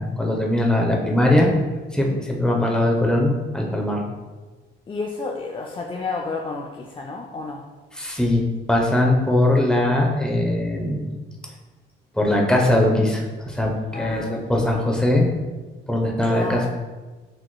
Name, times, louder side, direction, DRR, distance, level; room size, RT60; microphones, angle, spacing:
voice 1, 0.0-1.5 1.9-4.0 7.9-8.4 8.7-11.1 12.1-15.3 15.9-16.7, left 1 dB, 5° left, -1 dB, 0.8 m, -20 dB
voice 2, 4.9-7.7 13.9-14.6 16.2-16.7, left 3 dB, 25° left, -1 dB, 0.4 m, -31 dB
6.3 x 2.9 x 2.2 m, 1.3 s
cardioid pair, 90°, 20 cm